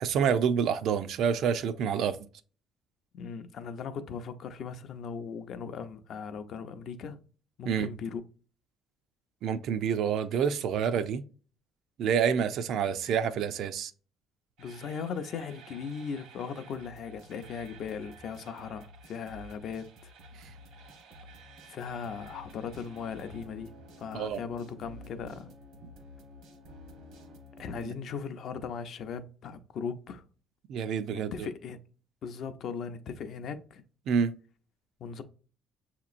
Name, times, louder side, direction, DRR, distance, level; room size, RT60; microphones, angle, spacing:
voice 1, 0.0-2.3 7.6-7.9 9.4-11.2 12.0-13.9 20.4-20.5 24.1-24.4 25.8-25.9 27.8-27.9 30.7-31.5 34.1-34.4, right 7 dB, 60° right, 0.4 m, -28 dB
voice 2, 3.1-7.2 7.6-8.2 14.6-20.1 21.7-23.7 24.0-25.5 27.6-30.2 31.1-31.8 32.2-33.8 35.0-35.2, left 6 dB, 50° left, 0.5 m, -38 dB
sound 1, 14.6-27.8, equal, 75° right, 1.1 m, -51 dB
6.5 x 2.9 x 2.4 m
cardioid pair, 160°, 0 cm